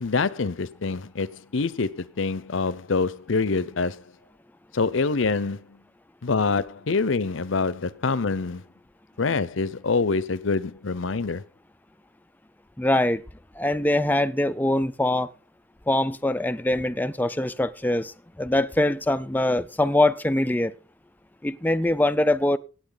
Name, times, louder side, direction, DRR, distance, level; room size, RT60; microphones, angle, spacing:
voice 1, 0.0-4.0 4.7-5.8 6.2-8.6 9.2-11.4, left 4 dB, 80° left, 0.7 m, -25 dB
voice 2, 12.8-13.2 13.6-15.3 15.9-18.1 18.4-20.7 21.4-22.6, left 1 dB, 10° left, 0.5 m, -23 dB
17.0 x 8.9 x 4.0 m
head